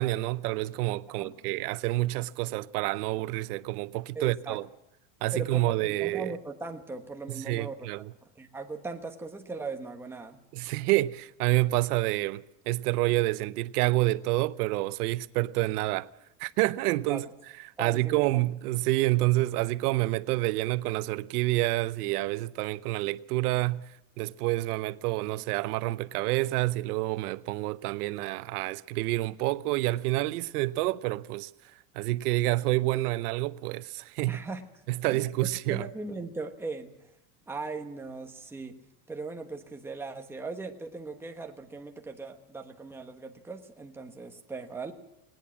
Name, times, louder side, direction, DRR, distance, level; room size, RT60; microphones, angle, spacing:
voice 1, 0.0-4.7 5.2-6.4 7.3-8.1 10.5-16.1 16.4-17.3 17.8-23.9 24.2-31.5 31.9-34.4 34.9-35.9, right 18 dB, 90° right, 0.8 m, -28 dB
voice 2, 4.1-4.6 5.3-7.9 8.4-10.4 17.1-17.3 17.8-18.4 34.3-34.6 35.1-35.2 35.7-36.9 37.5-38.7 39.1-44.9, right 3 dB, 5° right, 1.1 m, -39 dB
19.5 x 18.5 x 7.3 m
cardioid pair, 165°, 44 cm